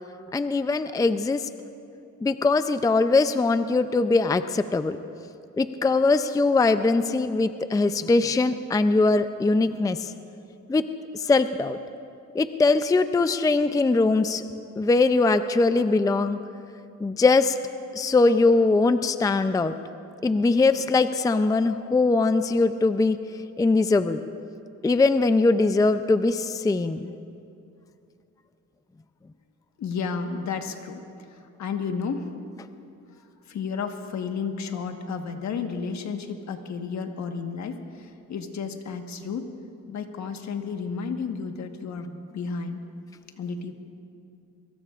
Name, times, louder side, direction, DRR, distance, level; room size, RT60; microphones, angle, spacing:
voice 1, 0.3-1.5 2.2-5.0 5.6-10.1 10.7-10.8 11.1-11.8 12.3-14.4 14.8-16.4 17.0-17.6 18.0-19.7 20.2-23.2 23.6-24.2 24.8-27.1, left 3 dB, 10° left, 11 dB, 0.5 m, -21 dB
voice 2, 29.8-32.3 33.1-39.5 39.9-42.8 43.4-43.7, left 5 dB, 65° left, 5 dB, 1.4 m, -32 dB
23.0 x 22.0 x 2.5 m, 2.6 s
cardioid pair, 90°, 30 cm